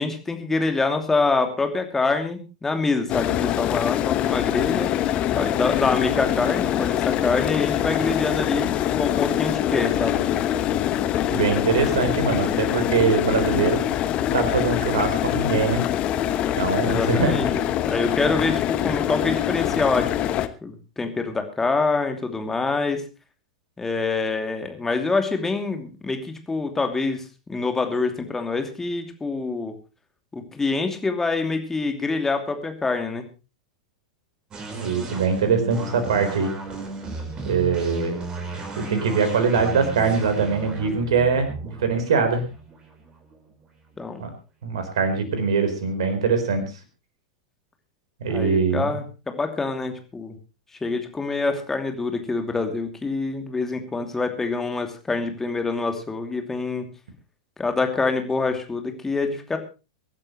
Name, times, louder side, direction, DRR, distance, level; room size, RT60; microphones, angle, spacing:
voice 1, 0.0-4.9 5.4-10.2 16.9-23.0 23.8-29.8 30.3-33.2 44.0-44.2 48.3-50.4 50.8-56.8 57.6-59.6, left 3 dB, 10° left, 5 dB, 2.7 m, -26 dB
sound 1, 3.1-20.5, left 11 dB, 35° left, 1.1 m, -24 dB
voice 2, 11.3-13.8 14.3-15.8 16.6-17.3 34.7-36.5 37.4-38.2 38.8-42.4 44.2-44.3 44.6-46.6 48.2-49.0, right 5 dB, 60° right, 9 dB, 4.2 m, -22 dB
sound 2, 34.5-44.0, right 3 dB, 25° right, 4.8 m, -35 dB
24.0 x 12.0 x 3.1 m, 0.30 s
figure-of-eight pair, 95°, 3 cm